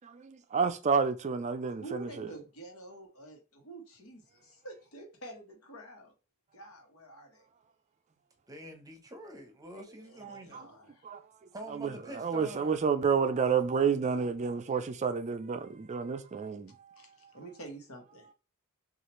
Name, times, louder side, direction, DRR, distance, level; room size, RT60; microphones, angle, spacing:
voice 1, 0.0-2.3 10.2-10.7 11.0-11.2 11.7-16.8, right 6 dB, 35° right, 0.4 m, -30 dB
voice 2, 1.8-6.1 6.5-7.5 10.0-11.1 17.0-18.3, right 2 dB, 80° left, 1.2 m, -48 dB
voice 3, 8.5-10.7 11.5-12.8, right 1 dB, 15° right, 0.7 m, -46 dB
6.3 x 2.4 x 3.0 m
head